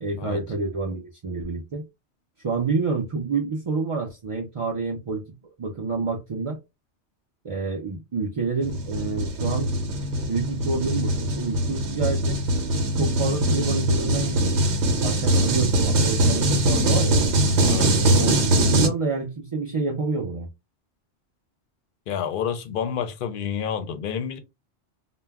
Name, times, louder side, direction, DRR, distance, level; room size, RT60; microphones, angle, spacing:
voice 1, 0.0-1.8 2.4-5.2 5.6-6.6 7.4-9.7 10.3-12.4 13.0-14.6 15.0-17.2 18.2-20.5, right 4 dB, 45° right, 0.4 m, -28 dB
sound 1, 8.6-18.9, right 1 dB, 80° right, 1.0 m, -22 dB
voice 2, 17.6-18.1 22.1-24.4, left 8 dB, 60° left, 0.6 m, -29 dB
2.3 x 2.1 x 3.3 m
omnidirectional pair, 1.1 m